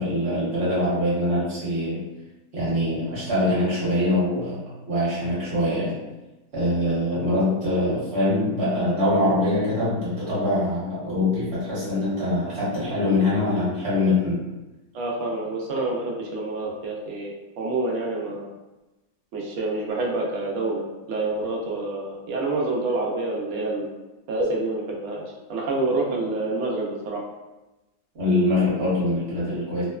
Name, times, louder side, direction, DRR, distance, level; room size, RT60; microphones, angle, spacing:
voice 1, 0.0-2.0 2.5-6.0 6.5-14.4 28.1-29.8, left 1 dB, 45° right, -9 dB, 1.1 m, -23 dB
voice 2, 14.9-18.5 19.3-23.9 24.3-25.2 25.5-27.2, right 2 dB, 80° right, -2 dB, 0.6 m, -27 dB
2.8 x 2.1 x 2.3 m, 1.1 s
omnidirectional pair, 1.8 m